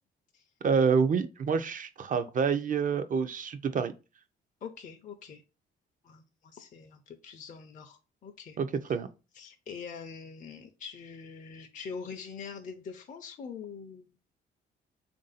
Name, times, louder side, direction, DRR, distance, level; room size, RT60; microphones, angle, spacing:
voice 1, 0.6-3.9 8.6-9.1, right 6 dB, 45° right, 0.5 m, -27 dB
voice 2, 4.6-5.4 6.0-8.6 9.3-14.2, left 6 dB, 40° left, 0.5 m, -44 dB
3.5 x 2.6 x 3.9 m
cardioid pair, 90°, 20 cm